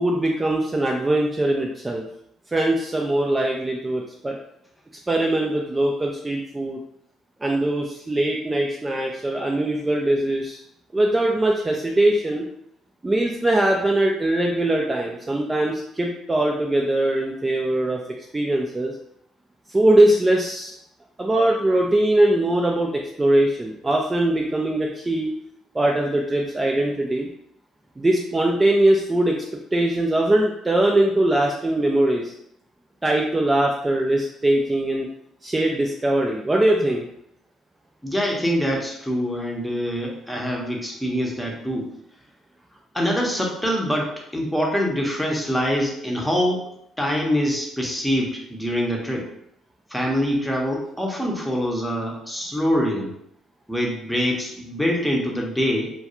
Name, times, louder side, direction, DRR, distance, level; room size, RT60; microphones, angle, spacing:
voice 1, 0.0-2.0 2.5-4.4 5.1-6.8 7.4-10.6 10.9-12.4 13.0-18.0 18.3-18.9 19.7-20.7 21.2-25.3 25.7-27.3 28.0-29.4 29.7-32.3 33.0-35.1 35.4-37.1, right 1 dB, 20° right, -1 dB, 0.3 m, -21 dB
voice 2, 38.0-41.9 42.9-46.6 47.0-49.3 49.9-53.1 53.7-55.9, equal, 5° left, -1 dB, 0.7 m, -24 dB
2.3 x 2.3 x 2.8 m, 0.74 s
supercardioid pair, 65°, 0 cm